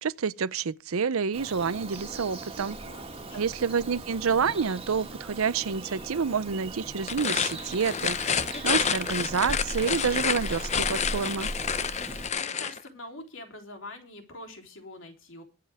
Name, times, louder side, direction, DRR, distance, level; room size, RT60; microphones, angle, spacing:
voice 1, 0.0-2.8 3.3-11.5, right 6 dB, 80° right, 0.6 m, -28 dB
Bird vocalization bird call bird song, 1.3-12.3, right 2 dB, 25° right, 2.1 m, -39 dB
voice 2, 2.7-3.5 12.3-15.4, left 2 dB, 65° left, 3.5 m, -45 dB
sound 1, 7.0-12.8, left 7 dB, 30° left, 0.7 m, -29 dB
22.5 x 7.8 x 3.5 m
head